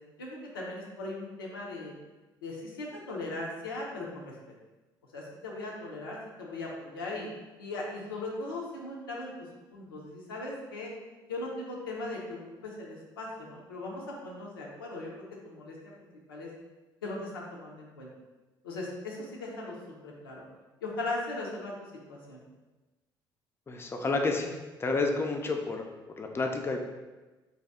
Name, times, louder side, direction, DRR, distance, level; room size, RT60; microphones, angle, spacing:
voice 1, 0.2-1.9 2.4-4.3 5.1-7.3 7.6-9.3 9.7-10.9 11.3-15.1 15.4-15.8 16.3-16.5 17.0-18.1 18.6-19.7 20.0-20.4 20.8-21.7 22.1-22.4, left 2 dB, 85° left, -3 dB, 0.5 m, -38 dB
voice 2, 23.7-24.5 24.8-26.8, left 3 dB, 20° left, 3 dB, 0.4 m, -30 dB
2.7 x 2.2 x 3.3 m, 1.2 s
hypercardioid pair, 50°, 11 cm